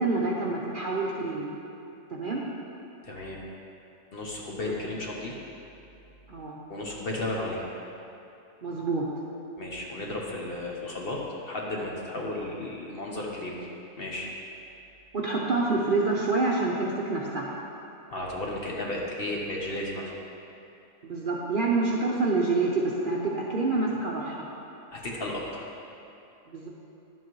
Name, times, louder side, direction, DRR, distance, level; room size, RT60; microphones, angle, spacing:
voice 1, 0.0-1.5 2.1-2.4 6.3-6.6 8.6-9.1 15.1-17.5 21.0-24.5 26.5-26.7, right 3 dB, 45° right, -4 dB, 0.7 m, -27 dB
voice 2, 3.0-3.4 4.1-5.4 6.7-7.7 9.6-13.6 14.0-14.3 18.1-20.1 24.9-25.7, left 1 dB, 45° left, -2 dB, 1.0 m, -34 dB
11.0 x 7.5 x 3.0 m, 2.7 s
omnidirectional pair, 1.5 m